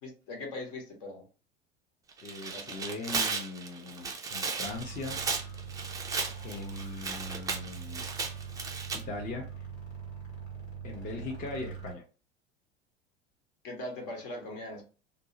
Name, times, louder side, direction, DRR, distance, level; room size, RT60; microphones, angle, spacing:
voice 1, 0.0-1.3 2.5-2.7 13.6-14.9, left 2 dB, 55° left, 2 dB, 1.0 m, -40 dB
Tearing, 2.1-9.0, right 4 dB, 10° right, 0.3 m, -35 dB
voice 2, 2.2-5.2 6.4-8.1 8.9-9.5 10.8-12.0, left 3 dB, 25° left, 1 dB, 0.6 m, -40 dB
sound 1, 4.6-11.9, right 6 dB, 80° left, 1.3 m, -43 dB
2.6 x 2.0 x 2.7 m, 0.34 s
figure-of-eight pair, 75°, 33 cm